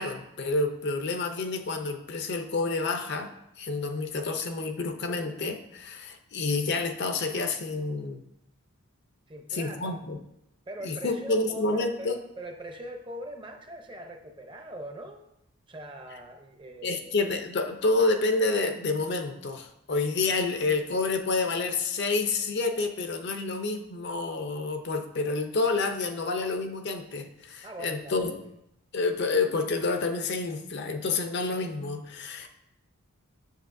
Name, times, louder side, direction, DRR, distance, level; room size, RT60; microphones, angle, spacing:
voice 1, 0.0-3.3 3.6-8.2 9.5-10.2 10.8-12.1 16.8-28.4 28.9-32.5, left 3 dB, 50° left, 6 dB, 0.6 m, -29 dB
voice 2, 9.3-10.0 10.7-15.2 15.7-17.1 27.6-28.5, right 1 dB, 25° right, 4 dB, 0.6 m, -42 dB
8.1 x 6.6 x 2.6 m, 0.81 s
head